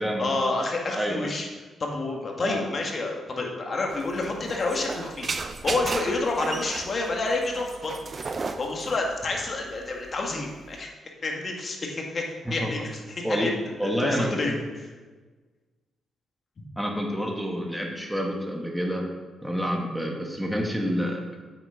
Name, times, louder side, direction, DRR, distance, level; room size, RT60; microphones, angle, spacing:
voice 1, 0.2-1.5 1.8-5.3 5.6-8.1 8.6-10.9 11.2-12.2 12.5-13.5 13.8-14.9, left 2 dB, 45° left, 1 dB, 2.0 m, -29 dB
voice 2, 1.0-1.3 2.4-2.7 12.5-12.7 13.2-13.5 13.8-14.6 16.8-19.0 19.4-21.2, equal, ahead, 0 dB, 1.9 m, -28 dB
sound 1, 3.9-10.8, right 4 dB, 40° right, 0.7 m, -35 dB
8.5 x 8.0 x 5.2 m, 1.3 s
cardioid pair, 75°, 0 cm